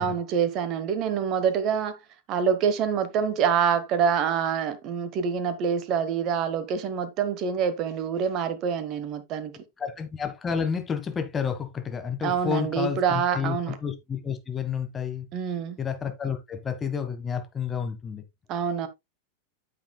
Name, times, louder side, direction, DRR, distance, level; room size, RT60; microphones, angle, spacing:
voice 1, 0.0-2.0 2.3-9.5 12.2-13.8 15.3-15.8 18.5-18.9, right 7 dB, 35° right, 1.1 m, -26 dB
voice 2, 9.8-15.3 15.8-18.2, left 7 dB, 20° left, 1.4 m, -30 dB
9.3 x 7.4 x 2.2 m
figure-of-eight pair, 90°, 0 cm